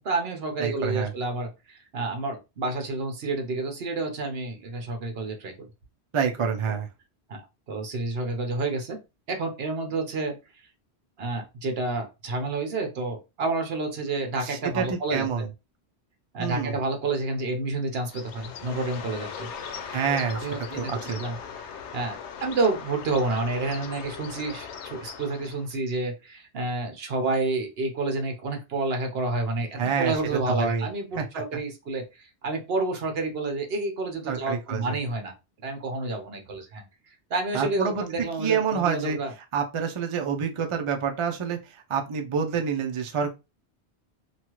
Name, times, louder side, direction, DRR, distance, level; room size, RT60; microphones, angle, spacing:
voice 1, 0.0-5.7 6.7-6.8 7.3-7.4 7.7-9.0 9.3-10.4 11.2-15.5 16.3-19.5 20.0-21.4 21.9-35.3 35.6-36.8 37.3-39.3, right 3 dB, 65° right, 1.0 m, -29 dB
voice 2, 0.6-1.1 6.1-6.9 14.4-15.5 16.4-16.7 19.9-21.2 29.8-30.1 30.5-30.9 31.2-31.3 34.3-35.0 37.5-39.2 39.5-43.3, right 6 dB, 50° right, 0.4 m, -27 dB
Bird, 18.0-25.8, left 7 dB, 85° left, 0.9 m, -39 dB
2.9 x 2.3 x 3.0 m
omnidirectional pair, 1.1 m